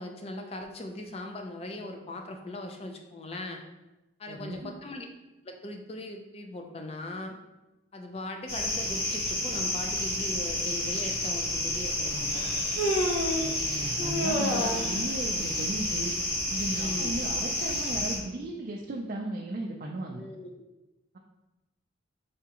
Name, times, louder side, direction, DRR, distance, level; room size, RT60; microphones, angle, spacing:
voice 1, 0.0-3.6 4.2-5.1 5.4-7.4 7.9-12.5 14.3-14.7 16.7-17.1 20.1-20.6, left 2 dB, 30° left, 3 dB, 0.4 m, -39 dB
voice 2, 4.3-4.7 13.3-16.1 16.5-20.2, right 2 dB, 45° right, -1 dB, 0.4 m, -36 dB
sound 1, 8.5-18.2, left 1 dB, 55° left, 1.0 m, -30 dB
Human voice, 11.0-11.1 12.3-13.5 14.0-15.0, equal, 80° left, 0.8 m, -29 dB
4.9 x 3.5 x 2.9 m, 1.0 s
head